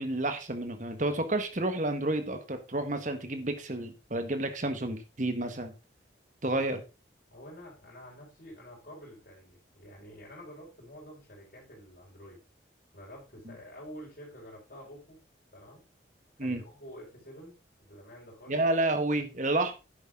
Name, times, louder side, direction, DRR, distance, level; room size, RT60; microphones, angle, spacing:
voice 1, 0.0-5.7 6.4-6.8 16.4-16.6 18.5-19.7, right 2 dB, 40° right, 1.4 m, -30 dB
voice 2, 7.3-12.4 12.9-15.2 15.5-15.9 16.4-18.6, equal, 50° left, 5.2 m, -49 dB
10.5 x 8.0 x 3.7 m
head